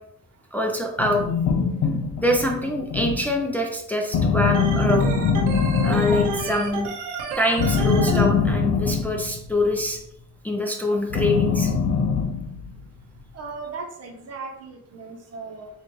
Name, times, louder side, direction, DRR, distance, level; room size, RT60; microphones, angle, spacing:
voice 1, 0.5-1.2 2.2-5.2 5.8-6.9 7.4-10.0 10.4-11.7, left 1 dB, 5° left, 0 dB, 0.5 m, -24 dB
sound 1, 1.0-3.4 4.1-6.7 7.6-9.6 11.1-12.8, left 5 dB, 70° left, 0.5 m, -23 dB
Organ, 4.5-8.3, right 4 dB, 85° right, 0.8 m, -31 dB
voice 2, 13.3-15.7, right 4 dB, 55° right, 2 dB, 0.9 m, -37 dB
4.1 x 2.5 x 3.1 m, 0.73 s
cardioid pair, 90°, 30 cm